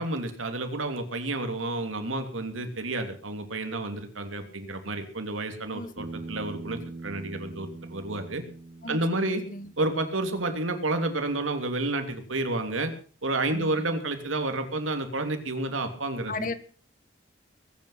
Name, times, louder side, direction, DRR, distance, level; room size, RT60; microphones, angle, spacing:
voice 1, 0.0-8.4 8.9-9.4 9.8-12.9 13.2-16.6, right 2 dB, 90° right, 6 dB, 3.2 m, -30 dB
Bass guitar, 6.0-10.3, right 2 dB, 60° right, 2.5 m, -42 dB
voice 2, 8.8-9.7 13.4-13.9 16.3-16.5, left 2 dB, 45° left, 12 dB, 1.6 m, -36 dB
21.5 x 9.6 x 5.9 m, 0.41 s
head